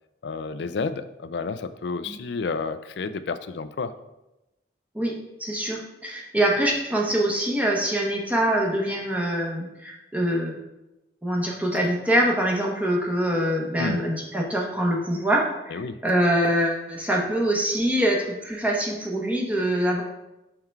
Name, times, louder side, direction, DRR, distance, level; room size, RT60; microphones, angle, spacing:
voice 1, 0.2-3.9 13.8-14.0 15.7-16.0, left 4 dB, 70° left, 12 dB, 0.4 m, -30 dB
voice 2, 5.4-10.6 11.2-20.0, right 1 dB, 10° right, -2 dB, 1.0 m, -24 dB
5.7 x 4.5 x 4.5 m, 0.96 s
head